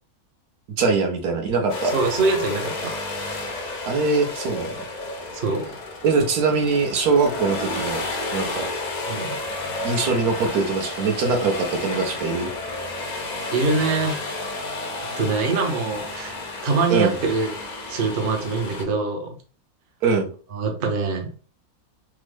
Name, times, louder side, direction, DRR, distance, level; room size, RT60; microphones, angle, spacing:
voice 1, 0.8-1.9 3.9-4.7 6.0-8.0 8.3-8.7 9.8-12.5 16.9-17.2 20.0-20.3, right 4 dB, 75° right, 3 dB, 1.2 m, -22 dB
sound 1, 1.7-18.8, left 2 dB, 80° left, 0.4 m, -31 dB
voice 2, 1.9-2.9 5.3-5.6 9.1-9.4 13.0-13.2 13.5-14.3 15.2-16.4 16.6-17.5 17.9-19.3 20.5-21.3, right 4 dB, 50° right, 2 dB, 0.7 m, -24 dB
3.5 x 2.0 x 3.2 m, 0.38 s
omnidirectional pair, 1.6 m